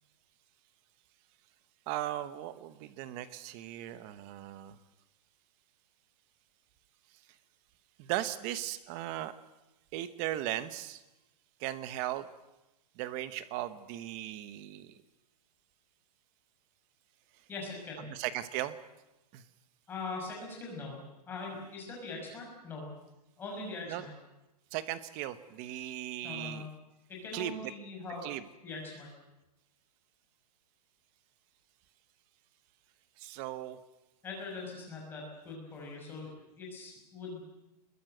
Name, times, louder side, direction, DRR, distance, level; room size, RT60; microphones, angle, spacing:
voice 1, 1.9-4.8 8.0-9.3 9.9-11.0 11.6-12.3 13.0-15.0 18.1-18.8 19.3-19.4 23.9-24.0 24.7-26.7 27.3-27.5 28.2-28.4 33.2-33.8, right 13 dB, 20° right, 13 dB, 1.0 m, -37 dB
voice 2, 17.5-18.1 19.9-22.9 23.4-24.1 26.2-26.7 27.1-28.3 28.6-29.1 34.2-36.3 36.6-37.4, left 3 dB, 10° left, -1 dB, 5.9 m, -42 dB
26.5 x 21.0 x 7.9 m, 0.98 s
hypercardioid pair, 175°, 21 cm